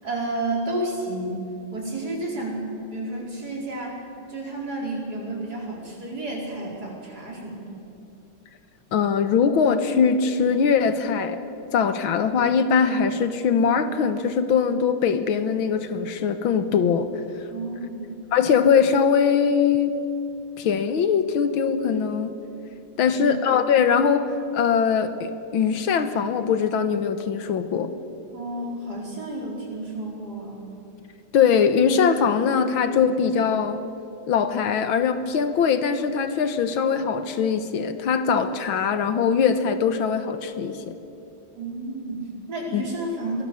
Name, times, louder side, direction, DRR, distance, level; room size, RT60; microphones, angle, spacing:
voice 1, 0.0-1.4 1.7-4.0 4.3-7.8 17.5-18.1 23.1-23.3 28.3-30.6 41.5-43.4, right 2 dB, 50° right, -2 dB, 5.0 m, -31 dB
voice 2, 8.9-11.4 11.7-17.1 18.3-20.0 20.6-22.3 23.0-27.9 31.3-33.8 34.3-40.9 42.7-42.8, left 6 dB, 80° left, 10 dB, 1.9 m, -21 dB
24.0 x 19.0 x 7.0 m, 2.8 s
omnidirectional pair, 2.2 m